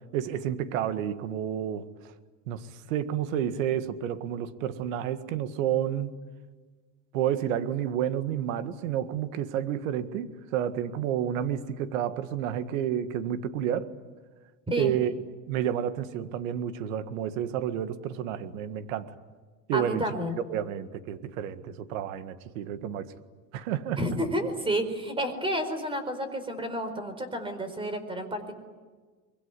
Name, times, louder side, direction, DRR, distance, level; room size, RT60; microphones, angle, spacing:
voice 1, 0.1-1.9 2.5-6.1 7.1-13.9 14.8-15.1 15.5-19.1 19.7-20.1 20.5-23.1 23.5-24.0, right 10 dB, 85° right, 11 dB, 1.9 m, -30 dB
voice 2, 19.7-20.4 24.0-28.5, right 1 dB, 15° right, 9 dB, 4.6 m, -30 dB
25.0 x 22.5 x 9.7 m, 1.4 s
supercardioid pair, 130°, 38 cm